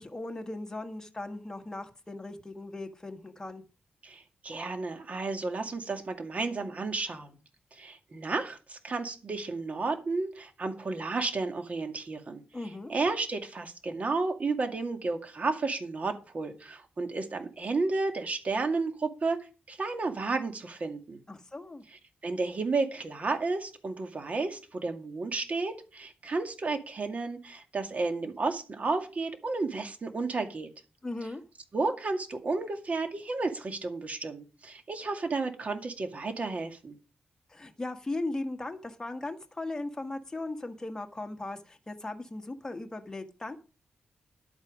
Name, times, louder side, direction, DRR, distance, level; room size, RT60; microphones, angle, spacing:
voice 1, 0.0-3.6 12.5-12.9 21.3-21.8 31.0-31.4 37.5-43.6, left 2 dB, 20° left, 4 dB, 1.7 m, -38 dB
voice 2, 4.0-7.4 7.7-12.4 12.9-19.4 19.7-21.2 22.2-30.7 31.7-37.0, right 3 dB, 45° right, 5 dB, 2.2 m, -32 dB
11.5 x 8.7 x 5.0 m, 0.33 s
wide cardioid pair, 105°, 3 cm